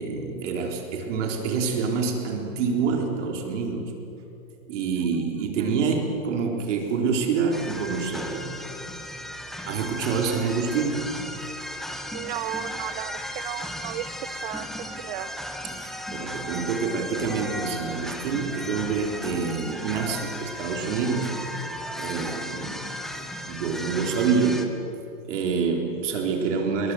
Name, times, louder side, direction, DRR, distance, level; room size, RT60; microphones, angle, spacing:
voice 1, 0.0-3.9 4.7-8.5 9.7-11.1 15.6-21.3 21.9-22.9 23.2-24.7 25.2-26.9, right 5 dB, 60° right, 2 dB, 4.1 m, -27 dB
sound 1, 7.5-24.7, equal, ahead, 0.9 m, -35 dB
voice 2, 12.1-15.3, right 15 dB, 35° right, 16 dB, 0.8 m, -35 dB
27.0 x 22.0 x 7.8 m, 3.0 s
hypercardioid pair, 155°, 41 cm